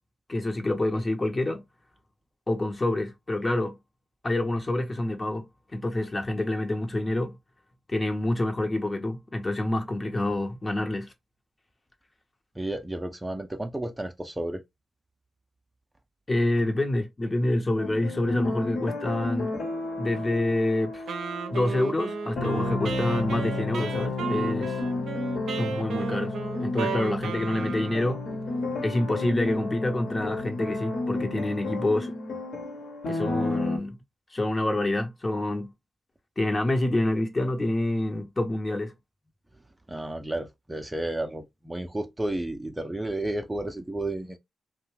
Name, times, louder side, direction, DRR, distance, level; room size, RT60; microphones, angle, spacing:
voice 1, 0.3-1.6 2.5-3.8 4.2-5.4 5.7-7.4 7.9-11.1 16.3-19.5 20.0-21.0 21.5-24.7 25.6-28.2 28.8-32.1 33.1-34.0 34.3-35.7 36.4-38.9, left 1 dB, 35° left, 0.8 m, -27 dB
voice 2, 12.6-14.6 39.9-44.4, right 1 dB, 15° right, 0.5 m, -32 dB
sound 1, 17.8-33.8, left 2 dB, 70° left, 1.0 m, -32 dB
Wind instrument woodwind instrument, 21.1-28.2, right 6 dB, 75° right, 0.5 m, -34 dB
2.6 x 2.1 x 3.1 m
supercardioid pair, 45°, 0 cm